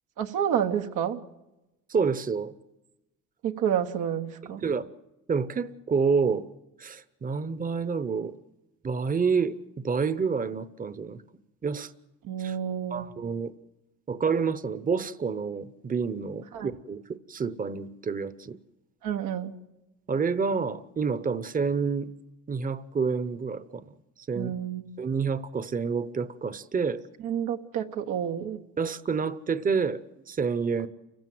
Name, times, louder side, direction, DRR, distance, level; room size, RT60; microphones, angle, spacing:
voice 1, 0.2-1.2 3.4-4.6 12.3-13.1 16.5-16.7 19.0-19.5 24.3-24.8 27.2-28.6, right 9 dB, 85° right, 1.4 m, -29 dB
voice 2, 1.9-2.5 4.4-4.9 5.3-6.5 6.8-8.4 8.8-11.2 11.6-11.9 12.4-12.6 12.9-13.5 14.1-18.6 20.1-22.1 22.5-23.8 24.3-24.5 25.0-27.0 28.8-30.9, right 5 dB, 30° right, 0.9 m, -28 dB
29.0 x 15.5 x 7.7 m
cardioid pair, 90°, 30 cm